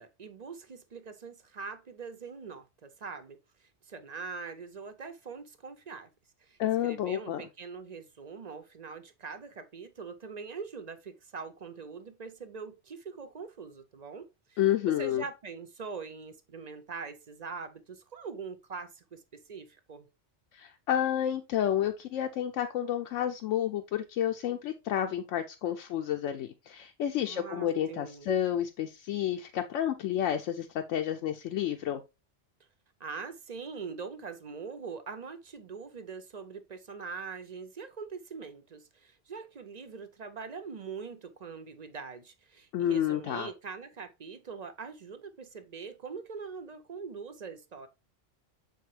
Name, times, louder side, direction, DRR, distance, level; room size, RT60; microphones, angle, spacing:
voice 1, 0.0-3.4 3.9-6.1 6.4-14.6 14.9-20.1 27.3-28.3 33.0-47.9, right 5 dB, 45° right, 0.6 m, -43 dB
voice 2, 6.6-7.5 14.6-15.2 20.5-32.0 42.7-43.5, left 11 dB, 85° left, 0.9 m, -30 dB
6.6 x 4.7 x 3.1 m
omnidirectional pair, 1.2 m